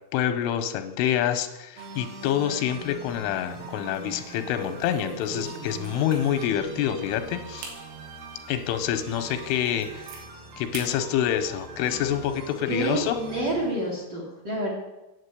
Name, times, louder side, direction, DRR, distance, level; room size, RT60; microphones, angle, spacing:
voice 1, 0.1-7.7 8.5-10.2 10.6-13.2, left 10 dB, 90° left, 8 dB, 3.2 m, -27 dB
sound 1, 1.8-14.1, right 4 dB, 65° right, 2.9 m, -43 dB
sound 2, 2.7-3.5 3.8-4.0 4.6-6.7 7.1-7.2 7.6-7.8 8.3-8.4 9.0-9.1 9.4-10.2 10.7-10.9 11.3-12.2, right 3 dB, 85° right, 4.5 m, -41 dB
voice 2, 12.7-14.7, right 1 dB, 45° right, -3 dB, 1.4 m, -28 dB
9.0 x 8.0 x 8.3 m, 1.0 s
omnidirectional pair, 5.7 m